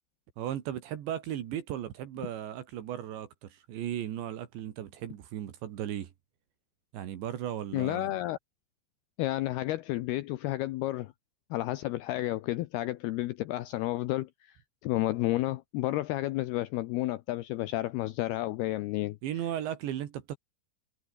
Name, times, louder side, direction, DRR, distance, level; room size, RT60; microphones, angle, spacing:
voice 1, 0.4-6.1 6.9-8.1 19.2-20.4, right 11 dB, 75° right, 4.2 m, -36 dB
voice 2, 7.7-8.4 9.2-11.1 11.5-14.6 14.8-19.2, left 16 dB, 80° left, 2.4 m, -31 dB
omnidirectional pair, 5.3 m